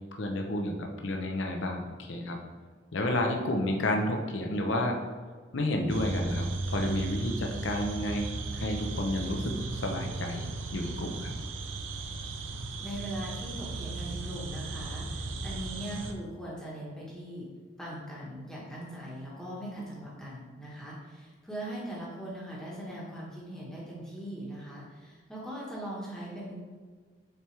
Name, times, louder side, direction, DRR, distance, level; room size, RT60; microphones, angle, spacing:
voice 1, 0.1-2.4 2.9-5.0 5.5-9.6 9.8-11.3, left 1 dB, 80° left, 2 dB, 0.8 m, -31 dB
sound 1, 5.9-16.1, right 3 dB, 85° right, 0.6 m, -36 dB
voice 2, 12.8-17.4 17.8-26.5, right 1 dB, 5° left, -6 dB, 1.3 m, -40 dB
6.8 x 4.4 x 3.3 m, 1.5 s
head